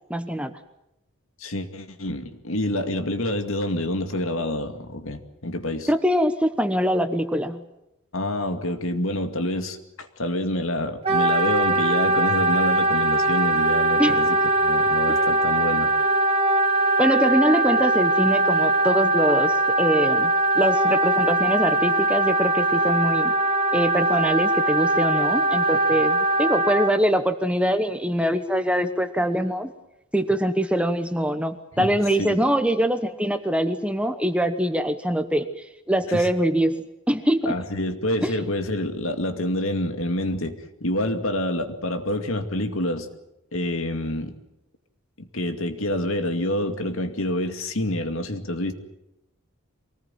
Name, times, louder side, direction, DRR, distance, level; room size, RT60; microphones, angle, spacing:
voice 1, 0.1-0.5 5.9-7.6 14.0-14.2 17.0-23.3 23.7-29.7 30.1-35.5 35.9-37.5 38.2-38.3, equal, 5° right, 9 dB, 1.1 m, -23 dB
voice 2, 1.4-5.9 8.1-15.9 31.8-31.9 32.2-32.4 36.1-36.3 37.5-43.1 43.5-44.4 45.2-48.7, left 1 dB, 70° left, 7 dB, 2.3 m, -27 dB
Wind instrument woodwind instrument, 11.0-26.9, right 2 dB, 25° right, 2.4 m, -21 dB
24.0 x 19.0 x 9.1 m, 0.88 s
head